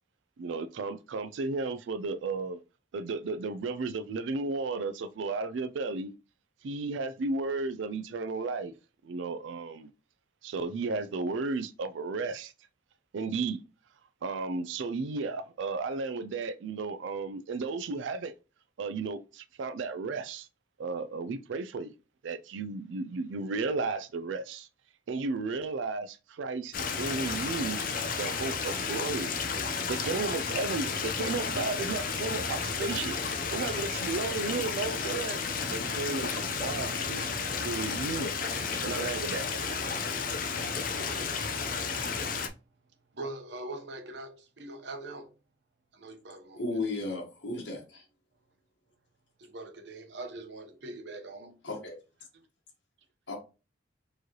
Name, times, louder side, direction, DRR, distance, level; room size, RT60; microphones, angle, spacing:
voice 1, 0.4-2.6 2.9-6.1 6.6-8.7 9.0-9.9 10.4-12.5 13.1-13.6 14.2-18.3 18.8-20.5 20.8-21.9 22.2-24.7 25.1-27.8 28.2-29.3 29.7-35.4 35.7-38.3 38.7-39.8, right 3 dB, 85° right, 0.4 m, -34 dB
Stream, 26.7-42.5, left 5 dB, 45° left, 0.6 m, -32 dB
voice 2, 43.1-45.3 45.9-46.6 47.0-47.1 49.4-51.6, right 2 dB, 70° right, 0.9 m, -42 dB
voice 3, 46.5-48.0 51.6-52.0 53.3-53.4, left 2 dB, 75° left, 1.4 m, -34 dB
4.5 x 3.1 x 2.9 m
head